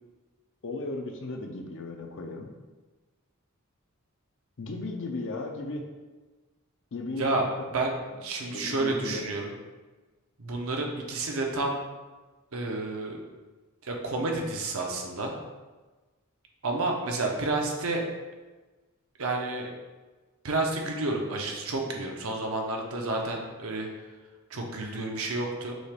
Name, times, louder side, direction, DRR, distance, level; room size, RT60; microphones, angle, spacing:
voice 1, 0.6-2.5 4.6-5.8 6.9-7.5 8.4-9.3, left 2 dB, 60° left, 3 dB, 0.6 m, -36 dB
voice 2, 8.2-9.5 10.4-11.8 12.5-13.2 13.8-15.3 16.6-18.1 19.2-19.7 20.4-23.9 24.5-25.7, right 2 dB, 65° right, 1 dB, 0.7 m, -30 dB
6.1 x 2.4 x 3.4 m, 1.2 s
head